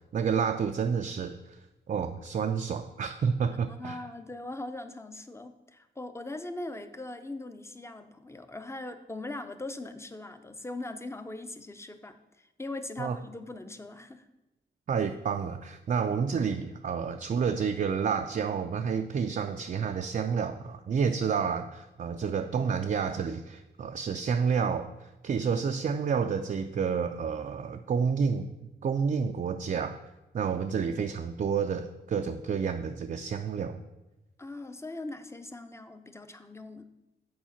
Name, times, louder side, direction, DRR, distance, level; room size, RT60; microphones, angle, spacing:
voice 1, 0.1-1.6 1.9-4.0 13.0-13.1 14.9-30.0 30.3-33.8, right 6 dB, 45° right, 6 dB, 0.4 m, -29 dB
voice 2, 3.5-14.3 34.4-36.9, left 2 dB, 15° left, 9 dB, 0.6 m, -40 dB
7.3 x 4.7 x 5.8 m, 1.0 s
wide cardioid pair, 90°, 19 cm